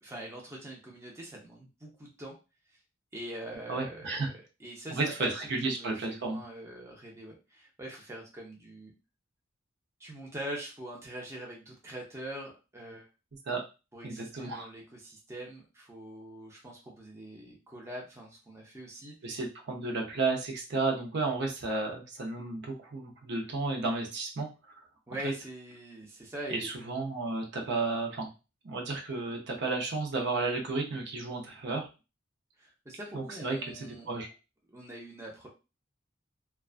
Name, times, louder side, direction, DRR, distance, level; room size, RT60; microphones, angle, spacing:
voice 1, 0.0-2.4 3.1-5.3 5.7-8.9 10.0-13.0 13.9-19.3 25.1-26.7 32.6-34.1 34.7-35.5, right 1 dB, 15° right, -2 dB, 0.5 m, -43 dB
voice 2, 3.7-4.3 4.9-6.4 13.5-13.6 14.0-14.7 19.2-24.8 25.2-25.3 26.5-28.3 28.6-31.9 33.1-34.3, right 3 dB, 60° right, 1 dB, 0.6 m, -33 dB
2.3 x 2.2 x 2.4 m, 0.30 s
head